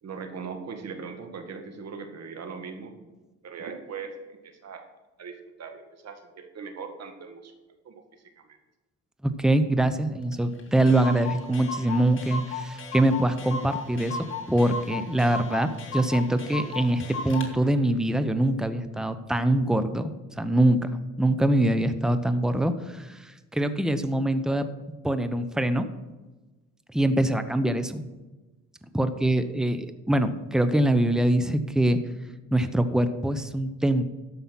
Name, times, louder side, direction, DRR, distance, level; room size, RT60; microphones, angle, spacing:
voice 1, 0.0-3.1 3.4-4.8 5.2-7.5 7.8-8.0 8.4-8.6, right 5 dB, 60° right, 6 dB, 1.8 m, -40 dB
voice 2, 9.2-14.2 14.5-20.9 21.2-24.7 25.0-25.9 26.9-28.0 28.9-32.0 32.5-34.0, right 1 dB, ahead, 10 dB, 0.8 m, -24 dB
Clock, 10.3-10.4 10.6-10.7 10.9-17.5, left 4 dB, 40° left, 2.4 m, -35 dB
13.0 x 5.7 x 5.9 m, 1.2 s
cardioid pair, 90°, 30 cm